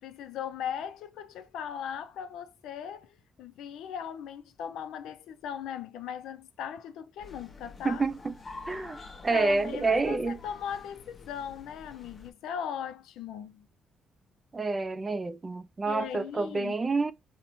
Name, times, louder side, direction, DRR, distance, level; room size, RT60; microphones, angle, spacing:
voice 1, 0.0-8.0 8.8-9.0 9.3-13.7 15.9-16.8, left 8 dB, 85° left, 0.3 m, -38 dB
sound 1, 7.2-12.3, left 3 dB, 30° left, 0.8 m, -48 dB
voice 2, 7.8-8.4 8.7-10.4 14.5-17.1, right 3 dB, 25° right, 0.3 m, -28 dB
3.0 x 2.1 x 2.6 m
cardioid pair, 90°, 0 cm